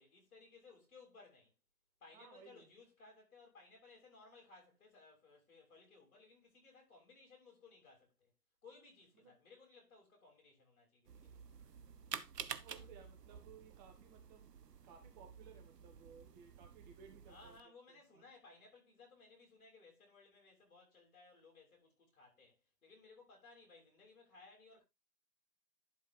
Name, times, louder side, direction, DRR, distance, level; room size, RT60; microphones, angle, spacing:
voice 1, 0.0-1.5 2.0-8.3 8.6-11.5 12.8-12.9 17.3-24.8, left 3 dB, 60° left, 7.1 m, -61 dB
voice 2, 2.1-2.7 9.1-9.3 11.6-11.8 12.5-14.5 14.8-18.2, right 6 dB, 30° right, 2.3 m, -60 dB
sound 1, 11.1-17.6, right 7 dB, 75° right, 1.1 m, -50 dB
11.5 x 5.8 x 3.7 m
hypercardioid pair, 140°, 48 cm